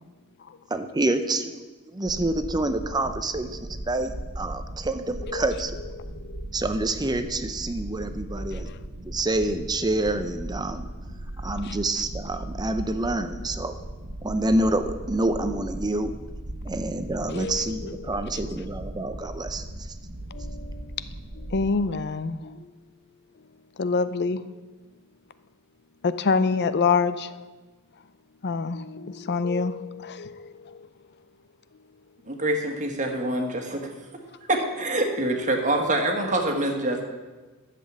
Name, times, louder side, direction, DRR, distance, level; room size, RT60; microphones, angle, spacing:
voice 1, 0.7-1.6 1.9-3.6 3.9-5.7 6.5-8.7 9.1-10.9 11.4-13.8 14.2-16.1 16.7-19.6, right 2 dB, 20° right, 9 dB, 0.6 m, -27 dB
Heart Sample Audacity, 2.0-21.7, right 1 dB, 85° right, 1.3 m, -37 dB
voice 2, 5.2-5.5 6.0-6.4 8.3-8.8 11.6-11.8 17.3-18.2 20.3-21.0 21.4-22.7 23.8-24.4 26.0-27.3 28.4-30.9, left 4 dB, 50° left, 13 dB, 0.6 m, -27 dB
voice 3, 32.3-33.9 34.5-37.0, right 1 dB, 35° right, 3 dB, 1.6 m, -25 dB
12.0 x 7.6 x 7.3 m, 1.3 s
head